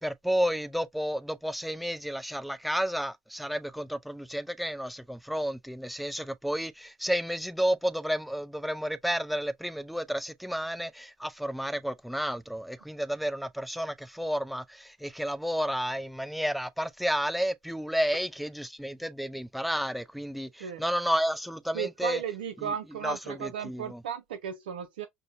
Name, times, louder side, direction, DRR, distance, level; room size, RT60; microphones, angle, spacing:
voice 1, 0.0-22.2 22.6-22.7 23.0-24.0, equal, ahead, 0.4 m, -31 dB
voice 2, 21.7-25.1, right 8 dB, 80° right, 0.4 m, -35 dB
5.4 x 2.0 x 2.5 m
hypercardioid pair, 75°, 5 cm